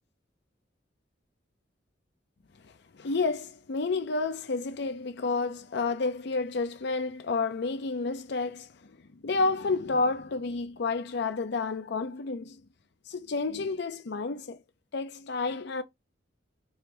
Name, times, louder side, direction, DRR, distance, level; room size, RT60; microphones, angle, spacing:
voice 1, 2.6-8.7 9.1-12.6 13.1-14.6 14.9-15.8, left 3 dB, 65° left, 0.5 m, -30 dB
4.8 x 2.2 x 2.8 m
head